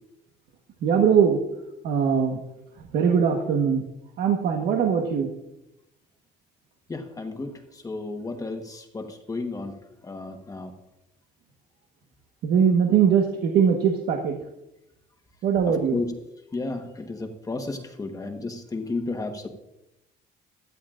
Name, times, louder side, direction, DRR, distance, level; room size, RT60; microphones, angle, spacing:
voice 1, 0.8-1.4 1.8-2.4 2.9-3.8 4.2-5.3 12.4-14.4 15.4-16.0, right 7 dB, 70° right, 2 dB, 1.3 m, -21 dB
voice 2, 6.9-10.7 15.6-16.1 16.5-19.5, left 3 dB, 20° left, 5 dB, 1.3 m, -33 dB
16.0 x 12.0 x 2.5 m, 0.90 s
cardioid pair, 110°, 17 cm